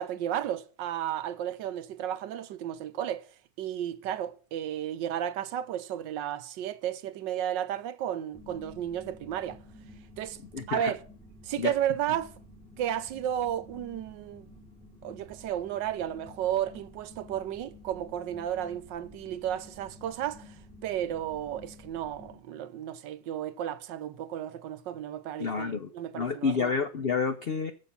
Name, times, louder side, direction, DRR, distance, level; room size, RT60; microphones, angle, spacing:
voice 1, 0.0-3.3 3.6-9.6 10.2-10.4 10.7-11.0 11.4-12.3 12.8-14.5 15.0-20.5 20.8-26.7, right 10 dB, 80° right, 1.4 m, -33 dB
sound 1, 8.3-22.4, left 1 dB, ahead, 6.3 m, -52 dB
voice 2, 10.5-10.9 11.6-11.7 25.4-25.9 26.1-27.7, left 5 dB, 85° left, 0.5 m, -29 dB
14.5 x 5.4 x 5.8 m
omnidirectional pair, 2.0 m